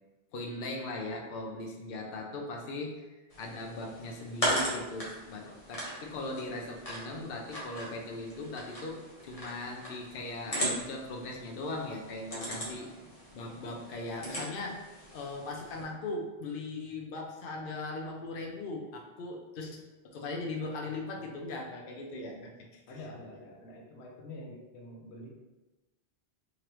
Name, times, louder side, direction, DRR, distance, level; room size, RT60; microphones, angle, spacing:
voice 1, 0.3-12.9 13.3-23.1, left 2 dB, 60° left, 0 dB, 0.8 m, -39 dB
sound 1, 3.3-15.8, equal, 35° left, 1.1 m, -38 dB
voice 2, 12.3-13.0 22.9-25.3, left 1 dB, 90° left, -1 dB, 1.0 m, -47 dB
3.7 x 3.1 x 3.0 m, 1.1 s
omnidirectional pair, 1.1 m